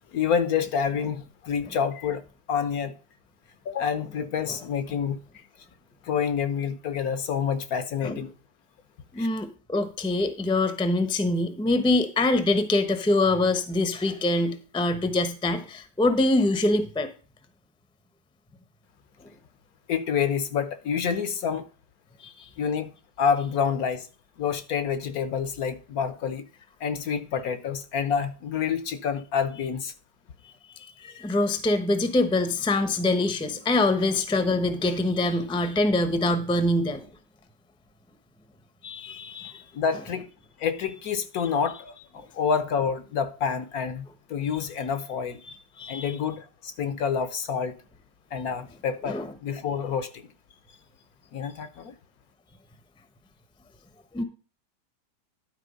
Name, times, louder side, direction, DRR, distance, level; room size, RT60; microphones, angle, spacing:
voice 1, 0.1-2.2 2.5-2.9 3.6-5.2 6.0-8.3 9.2-9.3 19.9-21.6 22.6-22.9 23.2-24.1 24.4-26.5 26.8-29.9 39.7-40.3 40.6-44.0 44.3-45.4 45.9-47.8 48.3-50.2 51.3-51.9, left 7 dB, 65° left, 1.2 m, -28 dB
voice 2, 9.1-17.1 22.2-22.5 30.8-37.1 38.8-39.6 45.8-46.2 49.0-49.3 54.1-54.2, left 2 dB, 5° left, 0.6 m, -24 dB
11.5 x 4.7 x 5.1 m
omnidirectional pair, 1.8 m